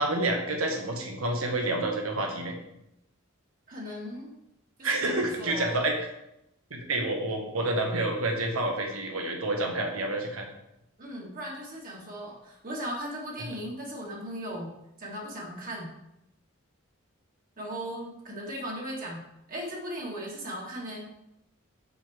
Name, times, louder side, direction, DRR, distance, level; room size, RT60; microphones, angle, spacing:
voice 1, 0.0-2.5 4.8-6.1 6.7-10.5 13.4-13.5, right 2 dB, 85° right, 2 dB, 1.3 m, -28 dB
voice 2, 3.7-4.3 4.8-5.8 11.0-14.7 15.0-15.9 17.6-19.2 19.5-21.1, equal, 40° right, -2 dB, 1.7 m, -37 dB
6.3 x 5.7 x 3.5 m, 0.84 s
head